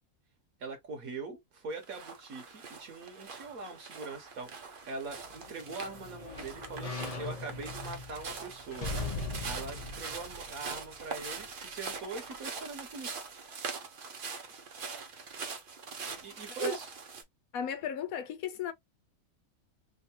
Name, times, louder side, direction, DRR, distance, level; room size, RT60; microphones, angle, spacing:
voice 1, 0.6-8.9 9.4-13.2 16.0-16.9, right 4 dB, 70° right, 1.7 m, -42 dB
sound 1, 1.8-17.2, right 5 dB, 45° right, 0.8 m, -43 dB
sound 2, 5.1-11.4 11.9-12.0, left 3 dB, 35° left, 0.7 m, -41 dB
voice 2, 17.5-18.7, left 8 dB, 75° left, 1.1 m, -35 dB
3.6 x 2.7 x 2.8 m
omnidirectional pair, 1.5 m